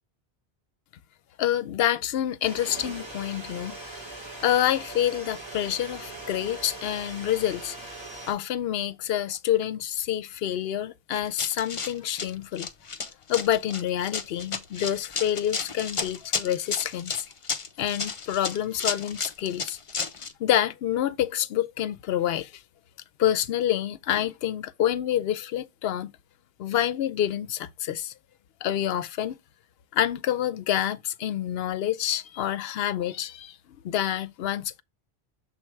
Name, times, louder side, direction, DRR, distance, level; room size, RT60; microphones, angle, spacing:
voice 1, 1.4-4.0 4.4-7.8 8.3-12.7 13.3-17.1 17.8-19.8 20.4-22.5 23.2-26.1 26.6-28.1 28.6-29.3 29.9-33.5 33.8-34.8, left 11 dB, 75° left, 0.8 m, -27 dB
sound 1, 2.4-8.3, right 2 dB, 25° right, 1.8 m, -40 dB
Run, 11.1-20.3, left 5 dB, 35° left, 0.6 m, -32 dB
6.8 x 3.3 x 4.5 m
omnidirectional pair, 1.0 m